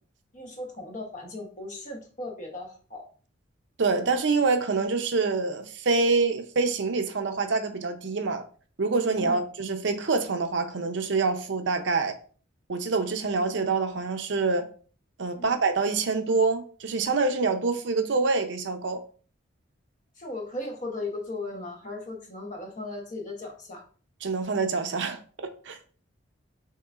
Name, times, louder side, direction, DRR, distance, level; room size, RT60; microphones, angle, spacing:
voice 1, 0.3-3.0 9.2-9.4 15.3-15.5 20.2-23.8, left 2 dB, 40° left, 0.9 m, -37 dB
voice 2, 3.8-8.4 8.8-12.1 12.7-14.7 15.2-19.0 24.2-25.8, right 4 dB, 65° right, 0.6 m, -26 dB
5.8 x 3.0 x 2.4 m
head